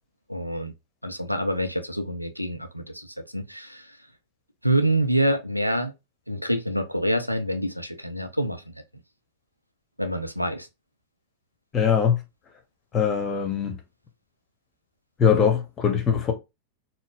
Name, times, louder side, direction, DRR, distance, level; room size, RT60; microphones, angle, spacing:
voice 1, 0.3-0.7 1.0-4.0 4.6-5.9 6.3-8.6 10.0-10.7, right 1 dB, 90° right, 0.4 m, -26 dB
voice 2, 11.7-12.2 12.9-13.8 15.2-16.3, left 7 dB, 25° left, 0.9 m, -21 dB
4.0 x 2.0 x 2.4 m
figure-of-eight pair, 90°, 0 cm